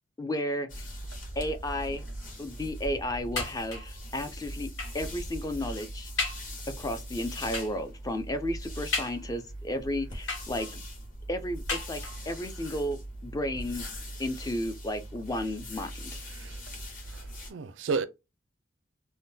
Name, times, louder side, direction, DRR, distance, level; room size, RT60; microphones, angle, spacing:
voice 1, 0.2-0.9 1.4-2.0 2.4-4.7 4.9-6.1 6.8-10.8 11.3-13.9 14.2-16.2, left 1 dB, 20° left, 0.4 m, -33 dB
sound 1, 0.7-17.5, equal, 40° left, 1.3 m, -41 dB
sound 2, 3.4-4.0 4.8-5.1 5.6-5.7 6.2-6.6 7.5-7.9 8.9-9.6 10.3-10.9 11.7-12.4 13.2-13.3 13.6-13.7, left 4 dB, 70° left, 1.7 m, -35 dB
voice 2, 17.1-18.0, right 4 dB, 70° right, 0.4 m, -33 dB
3.5 x 2.1 x 2.7 m
head